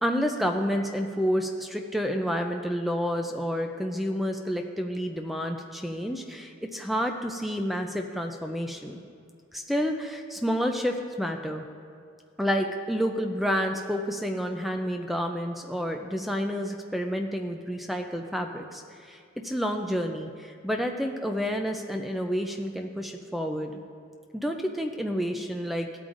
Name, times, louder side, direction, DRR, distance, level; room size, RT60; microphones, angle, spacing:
voice 1, 0.0-9.0 9.5-11.6 12.4-23.8 24.3-25.9, equal, ahead, 4 dB, 0.4 m, -29 dB
16.0 x 8.6 x 2.6 m, 2.4 s
head